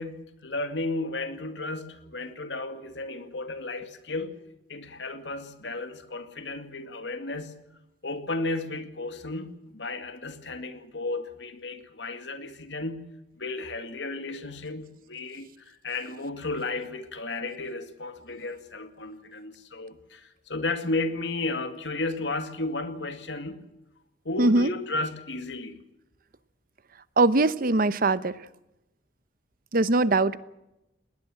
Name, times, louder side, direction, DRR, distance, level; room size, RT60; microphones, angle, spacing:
voice 1, 0.0-4.4 4.7-7.6 8.0-23.6 24.2-25.8, left 2 dB, 85° left, 2.3 m, -34 dB
voice 2, 24.4-24.7 27.2-28.3 29.7-30.4, right 2 dB, 55° right, 1.0 m, -21 dB
20.0 x 19.0 x 7.8 m
head